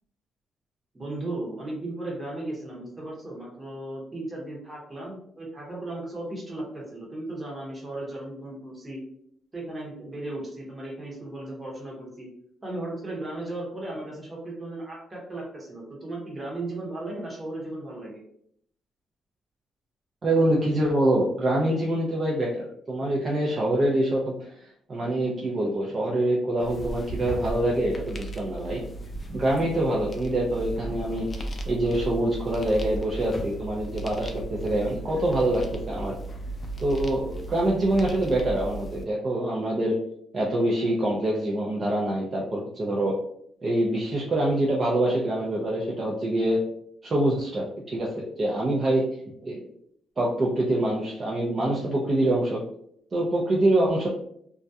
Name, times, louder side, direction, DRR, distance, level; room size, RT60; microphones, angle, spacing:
voice 1, 0.9-9.0 9.5-12.3 12.6-18.2, right 2 dB, 20° right, -3 dB, 0.9 m, -36 dB
voice 2, 20.2-24.5 24.9-28.8 29.3-36.1 36.8-40.0 40.3-43.1 43.6-46.6 47.0-49.0 49.4-49.7 50.2-52.6 53.1-54.1, right 1 dB, 40° right, -3 dB, 0.5 m, -25 dB
sound 1, 26.6-39.0, right 2 dB, 35° left, 0.4 m, -36 dB
2.3 x 2.1 x 2.7 m, 0.68 s
cardioid pair, 90°, 0 cm